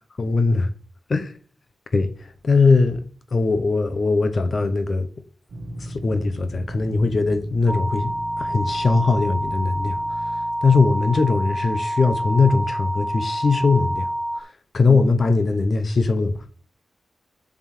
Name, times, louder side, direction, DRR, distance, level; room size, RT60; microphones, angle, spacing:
voice 1, 0.2-0.7 1.1-1.4 1.9-3.0 3.3-5.1 5.8-10.0 10.6-14.1 14.4-14.5 14.7-16.4, left 3 dB, 35° left, 0.9 m, -20 dB
sound 1, 5.5-10.8, right 1 dB, 40° right, 1.7 m, -37 dB
sound 2, 7.7-14.4, right 1 dB, 5° right, 0.3 m, -27 dB
7.4 x 3.7 x 6.4 m
wide cardioid pair, 175°, 0 cm